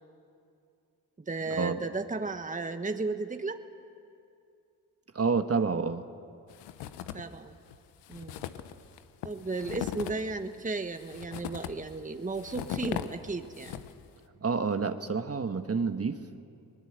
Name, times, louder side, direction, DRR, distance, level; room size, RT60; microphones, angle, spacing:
voice 1, 1.2-3.6 7.1-7.6 8.1-8.4 9.2-13.8, right 3 dB, 20° right, 8 dB, 1.2 m, -34 dB
voice 2, 5.1-6.0 14.4-16.2, right 5 dB, 35° right, 8 dB, 1.3 m, -28 dB
sound 1, 6.5-7.4 7.7-7.8 8.0-14.1, left 11 dB, 90° left, 0.9 m, -39 dB
20.5 x 20.0 x 8.0 m, 2.5 s
supercardioid pair, 50°, 41 cm